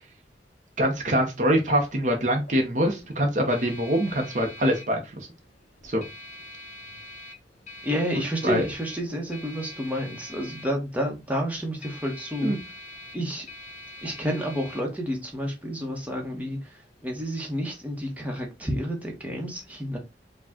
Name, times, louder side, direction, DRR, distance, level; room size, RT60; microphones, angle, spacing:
sound 1, 0.8-17.6, left 1 dB, 40° left, 1.0 m, -46 dB
voice 1, 0.8-5.3 5.8-6.0 8.4-8.7 12.4-12.6, equal, 45° right, 0.8 m, -24 dB
voice 2, 7.8-12.6 13.1-13.5 14.0-20.0, equal, 10° right, 1.0 m, -30 dB
4.9 x 2.3 x 3.6 m
head